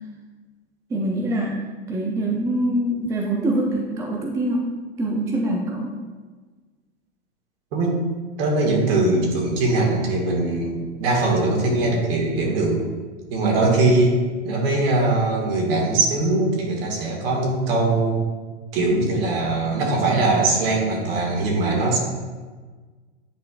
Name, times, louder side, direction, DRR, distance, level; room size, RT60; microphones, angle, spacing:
voice 1, 0.9-1.6 1.9-4.7 5.0-5.9, right 1 dB, 10° right, 0 dB, 0.4 m, -24 dB
voice 2, 7.7-8.0 8.4-12.8 13.3-14.2 14.4-18.2 18.7-22.0, right 2 dB, 55° right, -1 dB, 2.0 m, -21 dB
9.2 x 5.1 x 2.4 m, 1.4 s
hypercardioid pair, 115°, 36 cm